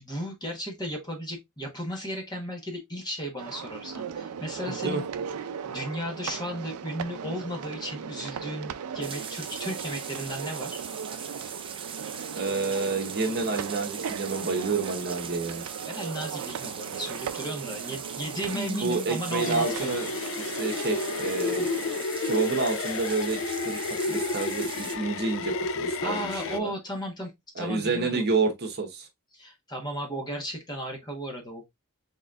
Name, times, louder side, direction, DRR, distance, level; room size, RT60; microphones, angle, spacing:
voice 1, 0.0-5.1 5.7-10.8 15.9-20.1 26.0-27.3 27.6-28.2 29.3-31.6, equal, 20° left, 1.2 m, -35 dB
sound 1, 3.4-22.0, right 7 dB, 85° right, 0.4 m, -37 dB
voice 2, 4.7-5.0 12.4-15.6 18.5-20.1 20.4-21.7 22.2-26.7 27.6-29.1, right 3 dB, 50° right, 0.9 m, -29 dB
sound 2, 9.0-25.0, right 7 dB, 25° right, 0.5 m, -40 dB
Circuit Bent Toy Piano, 19.4-26.6, left 3 dB, 60° left, 0.4 m, -31 dB
4.0 x 3.7 x 2.4 m
head